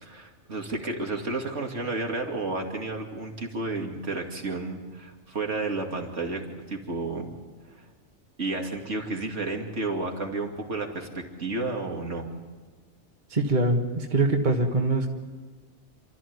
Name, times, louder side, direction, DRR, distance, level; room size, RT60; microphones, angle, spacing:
voice 1, 0.0-6.4 6.7-7.3 8.4-12.3, right 2 dB, 80° right, 2 dB, 2.9 m, -31 dB
voice 2, 13.3-15.1, right 2 dB, 40° right, 2 dB, 1.7 m, -23 dB
28.5 x 14.0 x 9.5 m, 1.4 s
omnidirectional pair, 1.2 m